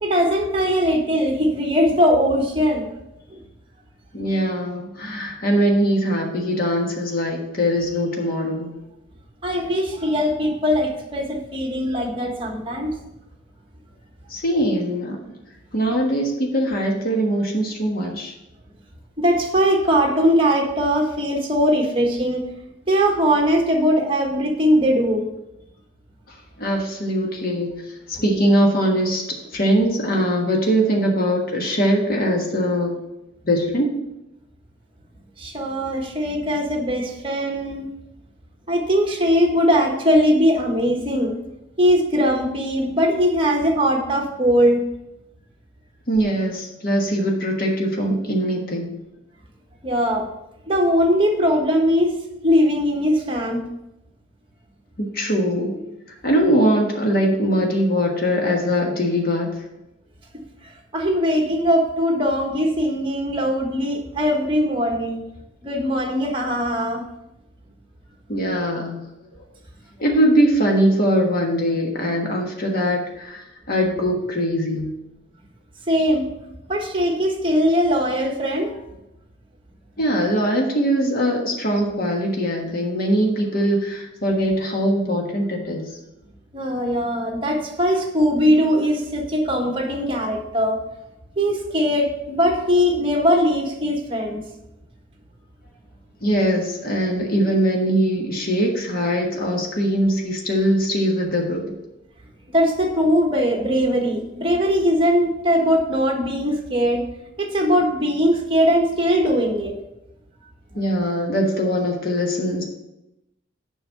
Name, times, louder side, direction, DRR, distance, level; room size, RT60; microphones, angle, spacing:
voice 1, 0.0-2.9 3.3-3.4 9.4-12.9 19.2-22.4 22.9-25.3 35.4-37.9 38.7-41.3 41.8-44.8 49.8-50.3 50.7-52.1 52.4-53.6 60.6-65.2 65.6-67.0 75.9-76.3 76.7-78.7 86.5-90.8 91.4-94.4 102.5-107.0 107.4-109.7, equal, 25° right, 1 dB, 1.4 m, -20 dB
voice 2, 4.1-8.8 14.3-15.2 15.7-18.3 26.6-27.8 28.1-29.2 29.5-32.9 33.4-33.9 46.1-48.9 55.0-55.8 56.2-59.5 68.3-69.0 70.0-74.9 80.0-85.9 96.2-101.6 110.7-112.6, equal, 50° left, 0 dB, 1.5 m, -21 dB
7.2 x 5.5 x 5.6 m, 0.89 s
head